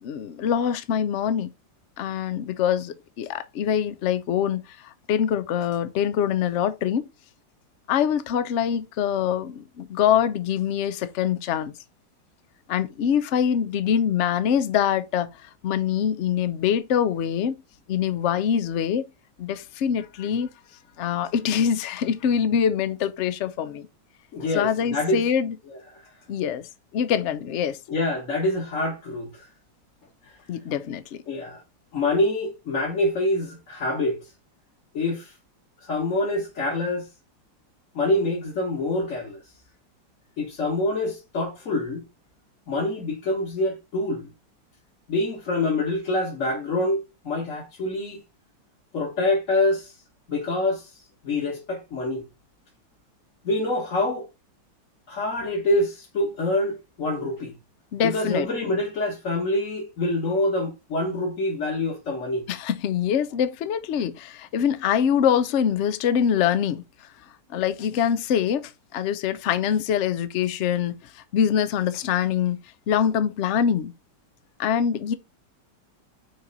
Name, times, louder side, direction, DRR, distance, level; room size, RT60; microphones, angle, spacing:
voice 1, 0.0-1.5 2.0-7.0 7.9-11.7 12.7-15.3 15.6-17.5 17.9-19.0 19.4-20.5 21.0-23.9 24.5-25.5 26.3-27.8 30.5-31.2 57.9-58.5 62.5-66.8 67.5-72.6 72.9-73.9 74.6-75.1, left 8 dB, 70° left, 0.6 m, -24 dB
voice 2, 24.3-25.2 25.7-26.1 27.9-29.4 30.2-30.4 31.3-31.6 31.9-34.3 34.9-35.4 35.8-37.1 38.0-39.4 40.4-42.1 42.7-44.3 45.1-48.2 48.9-50.0 50.3-52.3 53.4-54.3 55.1-57.5 58.0-62.5, left 2 dB, 45° left, 1.6 m, -26 dB
6.5 x 4.6 x 4.0 m
omnidirectional pair, 2.0 m